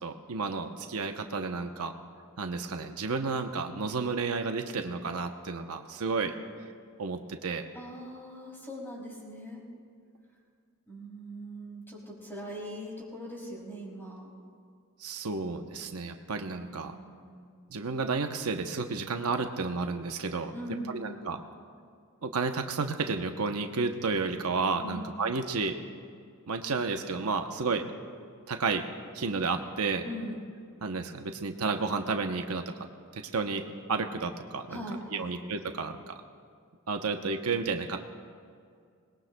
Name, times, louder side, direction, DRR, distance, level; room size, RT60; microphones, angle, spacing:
voice 1, 0.0-1.9 2.4-6.3 7.0-7.7 15.0-17.0 17.7-20.5 20.9-21.4 22.2-25.8 26.5-27.9 28.5-28.8 29.1-30.0 30.8-32.6 33.1-33.6 33.9-34.8 35.1-36.1 36.9-38.0, right 4 dB, 75° right, 5 dB, 0.8 m, -31 dB
voice 2, 7.7-9.6 10.9-14.3 16.6-17.4 20.5-21.2 24.8-25.1 30.0-30.5 34.7-35.3, equal, 10° left, -5 dB, 5.2 m, -41 dB
25.5 x 20.5 x 2.2 m, 2.2 s
head